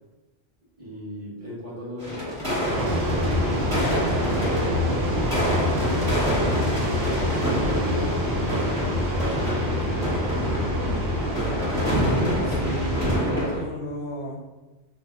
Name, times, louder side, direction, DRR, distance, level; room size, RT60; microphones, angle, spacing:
voice 1, 0.8-5.8 6.3-10.5, equal, 35° right, -8 dB, 1.0 m, -39 dB
sound 1, 2.0-13.6, equal, 5° left, 1.2 m, -28 dB
sound 2, 2.7-13.2, left 1 dB, 70° right, 1.0 m, -26 dB
voice 2, 12.2-14.4, equal, 55° left, -2 dB, 0.7 m, -33 dB
2.7 x 2.1 x 3.3 m, 1.1 s
omnidirectional pair, 1.1 m